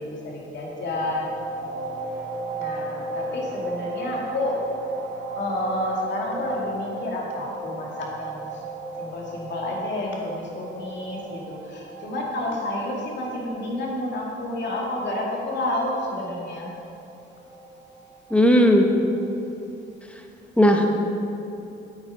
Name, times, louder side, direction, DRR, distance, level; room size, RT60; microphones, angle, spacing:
voice 1, 0.0-1.4 2.6-4.7 5.3-8.6 9.0-16.7, left 1 dB, 65° left, -2 dB, 2.3 m, -30 dB
sound 1, 0.8-19.4, right 2 dB, 80° right, 1.9 m, -36 dB
voice 2, 18.3-18.9 20.6-20.9, equal, 5° left, 3 dB, 1.2 m, -16 dB
8.8 x 8.6 x 5.1 m, 2.7 s
cardioid pair, 90°, 20 cm